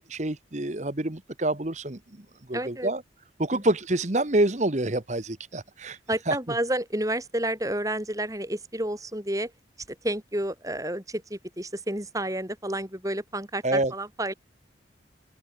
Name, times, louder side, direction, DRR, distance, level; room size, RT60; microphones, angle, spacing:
voice 1, 0.0-3.0 3.4-6.0 6.3-6.4 13.6-13.9, right 2 dB, 40° right, 1.3 m, -27 dB
voice 2, 2.5-2.9 3.5-3.6 6.1-9.5 9.9-14.3, right 1 dB, 20° right, 5.9 m, -30 dB
open air
head